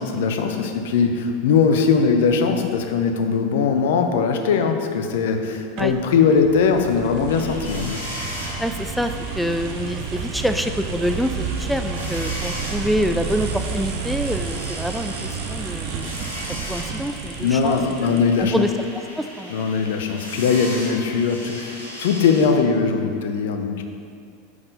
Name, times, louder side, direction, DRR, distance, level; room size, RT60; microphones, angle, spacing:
voice 1, 0.0-8.0 17.4-18.6 19.5-23.8, left 5 dB, 65° left, 5 dB, 0.6 m, -20 dB
sound 1, 5.8-18.5, right 5 dB, 50° right, 0.6 m, -31 dB
sound 2, 7.3-22.5, equal, 90° left, 1.5 m, -37 dB
voice 2, 8.6-16.1 16.7-17.8 18.0-18.7 19.2-19.5, equal, ahead, 6 dB, 0.3 m, -26 dB
5.3 x 4.8 x 5.2 m, 2.3 s
figure-of-eight pair, 85°, 0 cm